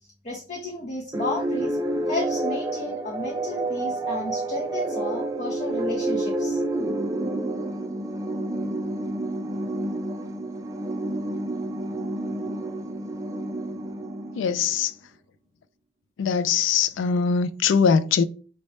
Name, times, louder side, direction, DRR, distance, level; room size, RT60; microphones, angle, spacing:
voice 1, 0.2-1.8 2.1-6.6, left 2 dB, 35° left, 0.6 m, -33 dB
sound 1, 1.1-14.9, right 1 dB, 15° right, 0.3 m, -29 dB
voice 2, 14.4-14.9 16.2-18.2, left 6 dB, 80° left, 0.3 m, -22 dB
3.1 x 2.2 x 4.0 m
head